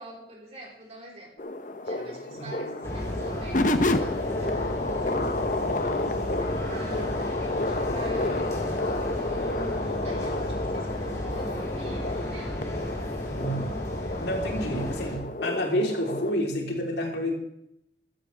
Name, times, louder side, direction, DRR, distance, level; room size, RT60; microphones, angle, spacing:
voice 1, 0.0-1.3 1.8-12.6, right 1 dB, 35° right, -3 dB, 4.4 m, -46 dB
sound 1, 1.4-16.3, left 2 dB, 45° left, 0.9 m, -30 dB
Singing, 2.0-7.4 8.0-11.9, equal, 70° right, 3.6 m, -45 dB
sound 2, 2.8-15.2, left 1 dB, 15° left, 3.4 m, -34 dB
voice 2, 13.4-13.7 14.2-17.3, equal, 80° left, -1 dB, 3.8 m, -29 dB
15.0 x 13.0 x 3.5 m, 0.74 s
head